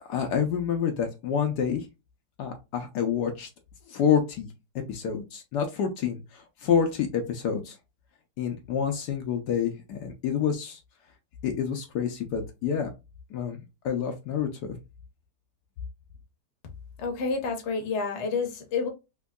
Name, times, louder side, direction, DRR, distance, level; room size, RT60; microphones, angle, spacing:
voice 1, 0.0-1.9 2.4-3.5 3.9-4.5 4.9-7.8 8.4-10.8 11.4-12.9 13.3-14.8, left 7 dB, 75° left, 1.2 m, -28 dB
voice 2, 17.0-18.9, left 4 dB, 50° left, 1.0 m, -29 dB
3.5 x 3.0 x 2.2 m
omnidirectional pair, 1.9 m